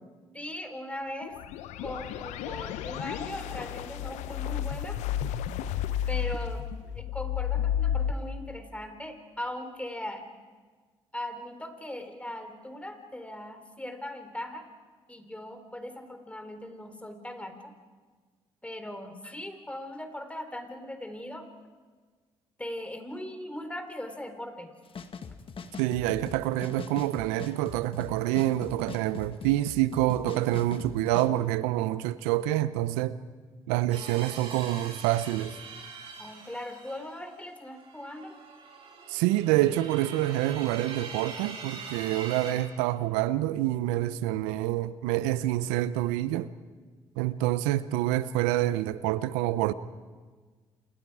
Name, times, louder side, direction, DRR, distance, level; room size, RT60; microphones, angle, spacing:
voice 1, 0.3-1.4 1.8-5.0 6.1-6.7 6.9-10.2 11.1-14.6 15.1-17.7 18.6-21.5 22.6-24.7 36.2-38.4 42.1-42.2, left 1 dB, 10° left, 3.8 m, -39 dB
sound 1, 1.2-8.1, left 9 dB, 75° left, 0.8 m, -32 dB
sound 2, 24.8-31.3, left 5 dB, 50° left, 1.8 m, -42 dB
voice 2, 25.8-33.2 33.7-35.6 39.1-46.5 47.2-49.7, right 15 dB, 85° right, 0.7 m, -27 dB
sound 3, 33.9-42.5, right 5 dB, 60° right, 6.5 m, -43 dB
29.5 x 27.5 x 4.9 m
hypercardioid pair, 50°, 12 cm